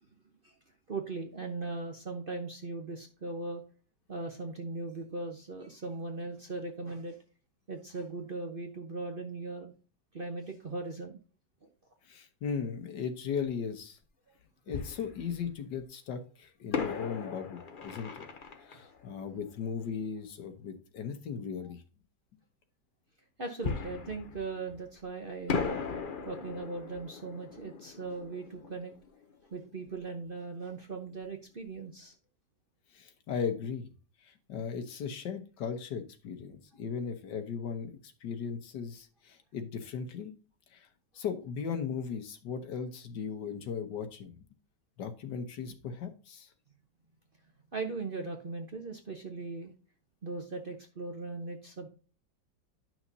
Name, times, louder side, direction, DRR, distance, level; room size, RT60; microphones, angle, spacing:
voice 1, 0.9-3.6 4.1-7.2 7.7-9.7 10.1-11.2 11.6-11.7 18.7-18.8 23.4-25.8 26.2-28.9 29.5-32.1 47.7-49.7 50.2-51.9, right 3 dB, 40° right, 3 dB, 0.9 m, -39 dB
voice 2, 12.1-14.0 14.7-18.2 18.7-21.8 32.9-33.9 34.2-40.3 40.7-40.9 41.1-44.3 45.0-46.5, left 6 dB, 70° left, 8 dB, 1.6 m, -37 dB
Fireworks, 13.4-13.5 14.7-15.8 16.7-20.2 23.6-25.1 25.5-30.0 30.3-30.4 30.9-31.1, left 5 dB, 50° left, 0.6 m, -38 dB
10.0 x 6.0 x 2.7 m, 0.36 s
omnidirectional pair, 2.0 m